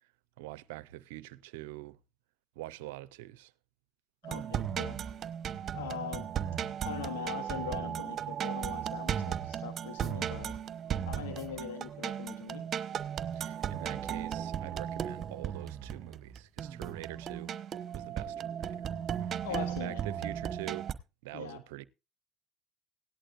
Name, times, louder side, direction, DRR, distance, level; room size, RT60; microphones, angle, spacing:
voice 1, 0.4-2.0 2.6-3.5 13.4-17.5 17.9-18.9 19.2-20.9 21.2-21.8, right 17 dB, 85° right, 0.5 m, -45 dB
voice 2, 4.2-5.0 5.7-6.3 6.8-10.5 11.0-12.6 19.4-20.0 21.3-21.6, left 9 dB, 90° left, 1.0 m, -41 dB
sound 1, 4.2-20.9, right 9 dB, 50° right, 1.0 m, -36 dB
17.0 x 11.0 x 2.5 m
hypercardioid pair, 65°, 0 cm